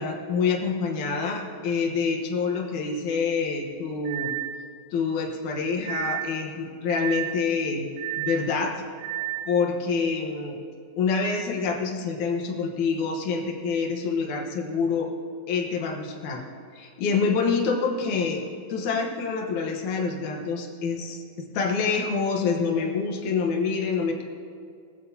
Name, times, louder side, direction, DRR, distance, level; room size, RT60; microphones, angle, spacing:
voice 1, 0.0-4.3 4.9-7.9 8.2-8.7 9.5-10.6 11.0-15.1 15.5-16.4 16.7-18.4 18.7-21.2 21.5-24.2, left 5 dB, 65° left, 1 dB, 2.1 m, -26 dB
sound 1, 2.6-2.7 4.0-4.6 5.8-6.4 6.9-7.4 8.0-8.5 9.0-9.5, right 14 dB, 90° right, 1.9 m, -31 dB
19.0 x 14.5 x 2.8 m, 2.3 s
omnidirectional pair, 4.8 m